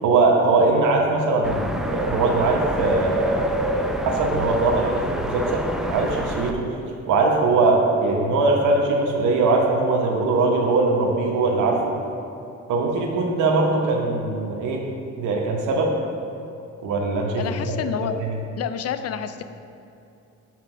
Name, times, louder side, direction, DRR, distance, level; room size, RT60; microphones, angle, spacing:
voice 1, 0.0-6.8 7.1-11.9 12.7-14.8 15.2-15.9 16.8-17.8 18.2-18.3, right 3 dB, 80° right, 0 dB, 0.9 m, -21 dB
sound 1, 1.4-6.5, equal, ahead, 0.4 m, -29 dB
voice 2, 17.4-18.2 18.6-19.4, left 8 dB, 55° left, 11 dB, 0.5 m, -28 dB
6.0 x 4.5 x 5.8 m, 2.7 s
cardioid pair, 90°, 30 cm